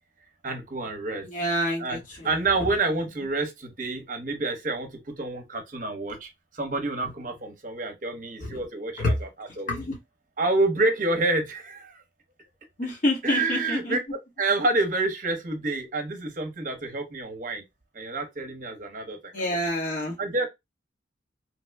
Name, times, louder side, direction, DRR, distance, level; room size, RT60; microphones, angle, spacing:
voice 1, 0.4-1.3 1.8-2.0 2.2-6.3 6.5-9.7 10.4-12.0 13.2-14.0 14.4-17.6 17.9-19.6 20.2-20.5, right 2 dB, 45° right, 0.8 m, -28 dB
voice 2, 1.3-2.3 8.4-8.5 9.0-9.2 9.7-9.9 12.8-14.0 19.3-20.1, left 1 dB, 45° left, 1.0 m, -27 dB
3.0 x 2.1 x 3.3 m
head